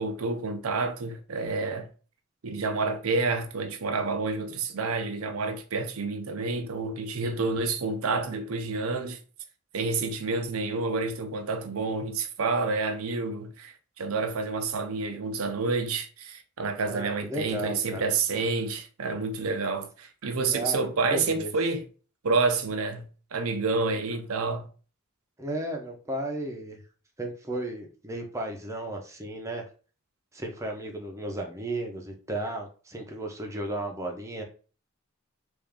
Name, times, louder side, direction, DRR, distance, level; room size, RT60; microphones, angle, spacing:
voice 1, 0.0-1.9 2.4-9.2 9.7-21.9 22.2-24.7, right 3 dB, 90° right, 0.6 m, -29 dB
voice 2, 16.8-18.0 20.5-20.8 21.1-21.5 25.4-26.8 27.2-29.7 30.3-34.4, right 1 dB, 15° right, 0.7 m, -34 dB
3.4 x 2.6 x 3.6 m
head